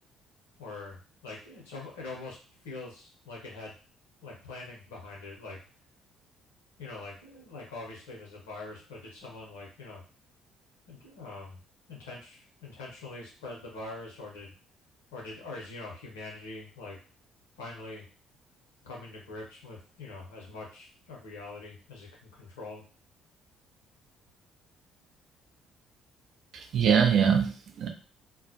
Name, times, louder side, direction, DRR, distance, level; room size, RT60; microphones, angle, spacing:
voice 1, 0.6-2.4 2.6-3.7 4.2-5.6 6.8-10.0 10.9-11.6 11.9-14.5 15.1-17.0 17.6-18.0 18.8-22.8, left 3 dB, 75° left, -3 dB, 0.8 m, -43 dB
voice 2, 26.5-27.9, right 7 dB, 55° right, 5 dB, 0.4 m, -23 dB
2.2 x 2.1 x 2.7 m, 0.37 s
figure-of-eight pair, 45°, 0 cm